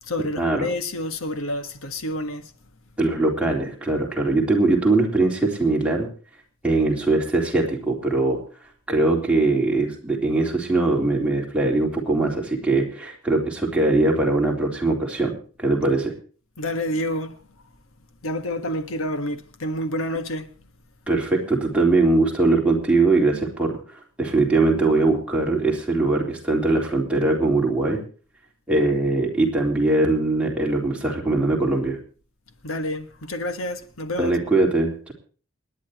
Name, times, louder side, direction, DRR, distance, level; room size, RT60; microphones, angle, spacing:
voice 1, 0.0-2.5 16.6-17.4 18.2-20.5 32.6-34.4, left 1 dB, 80° left, 1.5 m, -28 dB
voice 2, 3.0-6.1 6.6-8.4 8.9-16.1 21.1-23.8 24.2-28.0 28.7-32.0 34.2-35.1, right 2 dB, 5° right, 3.6 m, -21 dB
28.5 x 10.5 x 2.9 m
head